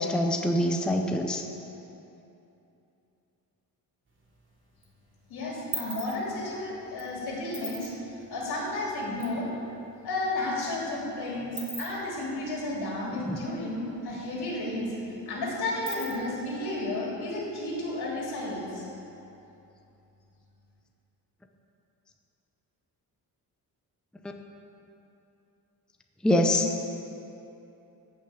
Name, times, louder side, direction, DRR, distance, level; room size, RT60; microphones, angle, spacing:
voice 1, 0.0-1.4 13.2-13.4 26.2-26.7, left 1 dB, ahead, 3 dB, 0.5 m, -24 dB
sound 1, 4.1-4.8 5.2-9.4 9.7-9.8 10.0-13.8 14.1-14.2 14.5-16.5, right 1 dB, 30° right, 2.6 m, -41 dB
voice 2, 5.3-7.9 8.3-9.5 10.0-14.9 15.3-18.8, left 2 dB, 85° left, -4 dB, 3.6 m, -32 dB
14.5 x 6.2 x 8.2 m, 2.9 s
wide cardioid pair, 175°, 38 cm